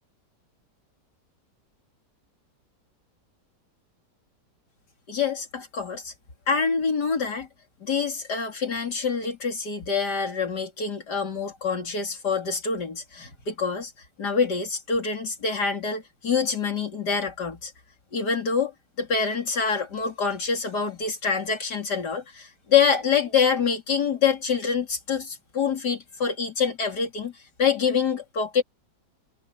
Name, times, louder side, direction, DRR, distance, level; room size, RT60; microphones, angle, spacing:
voice 1, 5.1-6.1 6.5-7.5 7.8-13.9 14.2-17.7 18.1-18.7 19.0-27.3 27.6-28.6, left 6 dB, 75° left, 3.8 m, -26 dB
omnidirectional pair, 1.8 m